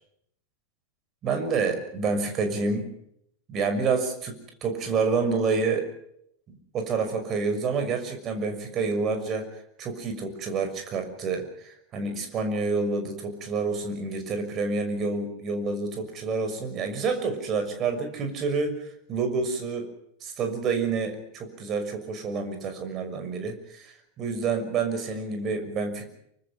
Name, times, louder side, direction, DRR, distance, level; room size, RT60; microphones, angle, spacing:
voice 1, 1.2-2.9 3.5-5.9 6.5-19.9 20.2-26.1, right 4 dB, 30° right, 7 dB, 6.1 m, -28 dB
28.5 x 25.0 x 5.1 m, 0.73 s
figure-of-eight pair, 90°, 0 cm